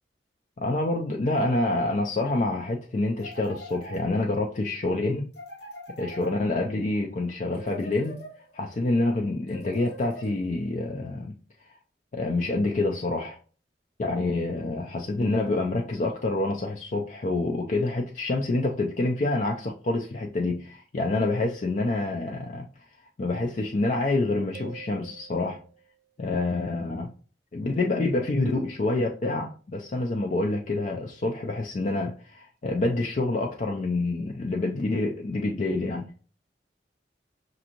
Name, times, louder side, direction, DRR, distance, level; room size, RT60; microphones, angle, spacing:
voice 1, 0.6-5.3 6.0-8.2 8.5-11.4 12.1-13.4 14.0-22.9 23.2-25.6 26.2-27.1 27.5-36.1, left 2 dB, 45° left, 0.4 m, -27 dB
sound 1, 3.2-4.5 5.3-6.9 7.5-8.7 9.5-10.7, equal, 80° left, 1.1 m, -44 dB
sound 2, 24.5-26.1, right 10 dB, 60° right, 0.4 m, -47 dB
6.0 x 2.6 x 2.9 m
head